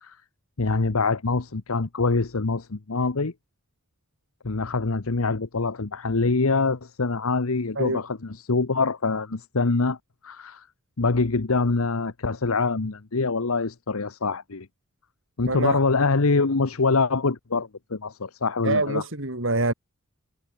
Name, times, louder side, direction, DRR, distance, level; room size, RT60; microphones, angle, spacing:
voice 1, 0.6-3.3 4.4-10.0 10.2-10.6 11.0-14.7 15.4-19.0, left 3 dB, 80° left, 1.0 m, -24 dB
voice 2, 15.5-15.8 18.6-19.7, right 2 dB, 60° right, 3.7 m, -25 dB
head